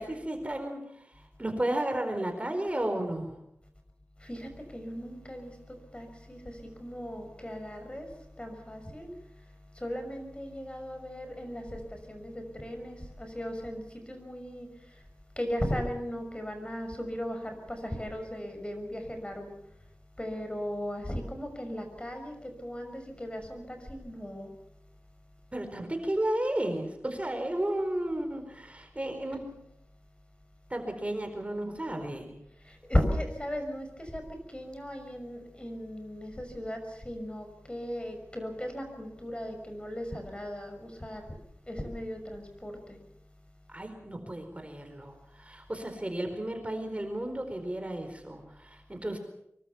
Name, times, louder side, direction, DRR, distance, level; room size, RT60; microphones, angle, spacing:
voice 1, 0.0-3.4 25.5-29.4 30.7-32.3 43.7-49.2, right 1 dB, 25° right, 6 dB, 4.4 m, -33 dB
voice 2, 4.2-8.1 8.4-9.1 9.7-14.7 14.9-15.0 15.4-19.5 20.2-24.5 32.6-41.3 41.7-43.0, equal, 20° left, 5 dB, 6.2 m, -36 dB
25.0 x 23.5 x 5.8 m, 0.76 s
wide cardioid pair, 60°, 5 cm